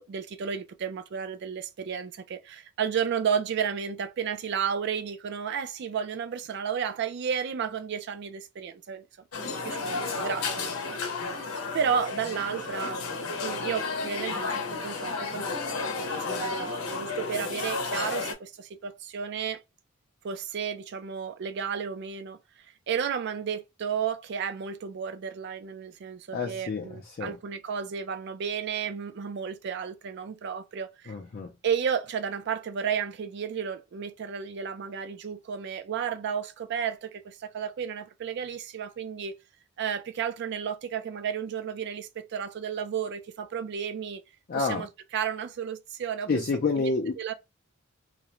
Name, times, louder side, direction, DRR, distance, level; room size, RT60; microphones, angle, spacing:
voice 1, 0.0-9.0 9.6-11.0 11.7-13.0 13.4-19.6 20.2-22.4 22.9-31.1 31.6-39.3 39.8-44.2 44.5-46.4 46.8-47.3, right 7 dB, 55° right, 0.4 m, -32 dB
sound 1, 9.3-18.3, left 4 dB, 80° left, 0.7 m, -32 dB
voice 2, 26.3-27.4 31.1-31.5 44.5-44.9 46.3-47.1, left 4 dB, 45° left, 0.4 m, -29 dB
2.4 x 2.0 x 2.9 m
head